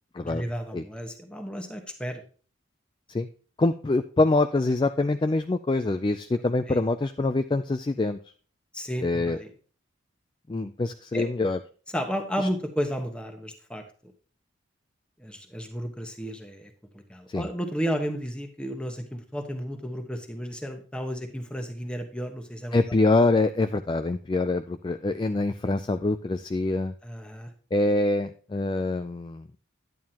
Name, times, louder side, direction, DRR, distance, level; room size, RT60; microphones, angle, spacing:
voice 1, 0.2-2.2 6.7-6.8 8.7-9.5 11.1-11.3 11.9-14.1 15.2-22.8 27.0-27.5, equal, 5° left, 4 dB, 1.1 m, -33 dB
voice 2, 3.6-8.3 9.0-9.4 10.5-11.6 12.4-12.5 17.3-17.5 22.7-26.9 27.7-29.5, left 2 dB, 25° left, 9 dB, 0.3 m, -25 dB
10.5 x 9.2 x 2.9 m, 0.40 s
head